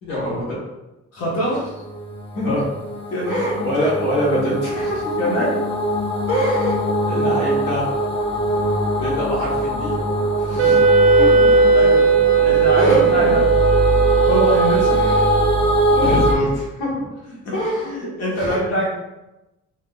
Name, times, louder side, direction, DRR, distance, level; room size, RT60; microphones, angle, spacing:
voice 1, 0.0-0.6 2.3-2.7 3.3-5.4 6.3-6.8 7.0-7.9 9.0-10.0 10.4-11.6 12.8-13.3 15.0-15.2 15.9-17.1 17.5-18.0 18.2-18.6, equal, 85° left, -6 dB, 1.2 m, -24 dB
voice 2, 1.1-1.7 3.1-3.5 5.2-5.6 11.7-12.1 12.4-13.4 14.2-15.1 17.5-17.6 17.8-18.9, equal, 55° left, -5 dB, 1.2 m, -23 dB
sound 1, 1.5-16.3, equal, 20° left, 0.6 m, -22 dB
Wind instrument woodwind instrument, 10.6-15.8, right 5 dB, 50° right, 0.4 m, -16 dB
3.4 x 2.8 x 2.3 m, 0.99 s
cardioid pair, 90°, 30 cm